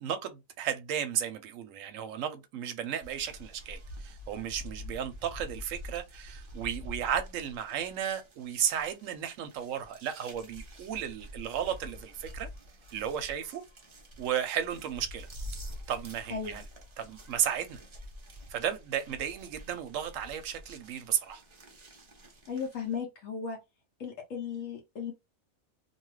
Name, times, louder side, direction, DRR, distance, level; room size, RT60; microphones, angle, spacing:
voice 1, 0.0-12.5 12.9-13.6 14.2-15.3 15.9-16.6 17.0-17.8 18.5-21.4, right 9 dB, 70° right, 0.9 m, -34 dB
sound 1, 3.0-23.0, equal, 35° right, 0.5 m, -47 dB
voice 2, 16.3-16.6 22.5-23.6 24.0-25.1, left 6 dB, 70° left, 1.1 m, -36 dB
2.7 x 2.3 x 3.1 m
omnidirectional pair, 1.5 m